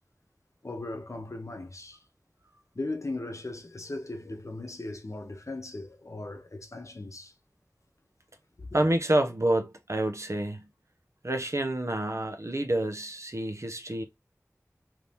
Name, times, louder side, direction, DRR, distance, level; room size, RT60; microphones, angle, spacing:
voice 1, 0.6-2.0 2.7-7.3 8.6-8.8, left 2 dB, 60° left, 0.8 m, -38 dB
voice 2, 8.7-10.7 11.2-14.0, right 1 dB, 55° right, 0.8 m, -28 dB
3.0 x 2.7 x 3.4 m
wide cardioid pair, 40°, 6 cm